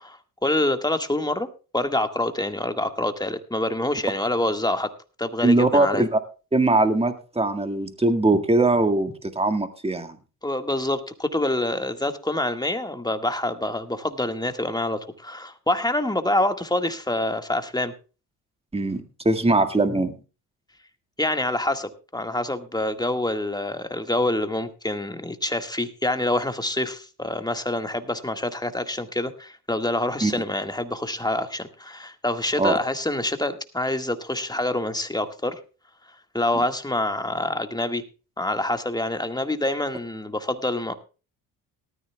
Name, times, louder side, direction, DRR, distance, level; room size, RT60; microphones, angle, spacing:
voice 1, 0.0-1.5 1.7-4.9 5.2-6.1 10.4-17.9 21.2-35.6 36.3-38.0 38.4-40.9, left 1 dB, 10° left, 7 dB, 1.8 m, -26 dB
voice 2, 5.4-6.2 6.5-10.2 18.7-20.1 30.2-30.3 32.6-32.8 36.5-36.6, right 2 dB, 15° right, 8 dB, 1.9 m, -21 dB
18.5 x 13.0 x 2.3 m, 0.34 s
hypercardioid pair, 55°, 44 cm